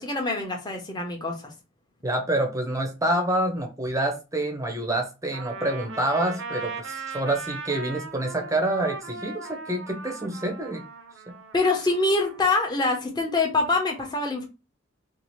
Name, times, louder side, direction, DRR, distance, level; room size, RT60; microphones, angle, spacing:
voice 1, 0.0-1.5 11.5-14.5, left 3 dB, 20° left, 2 dB, 0.7 m, -25 dB
voice 2, 2.0-10.8, right 1 dB, 15° right, 4 dB, 0.6 m, -27 dB
Trumpet, 5.3-12.4, right 3 dB, 70° right, 0.6 m, -38 dB
2.7 x 2.4 x 3.1 m, 0.29 s
head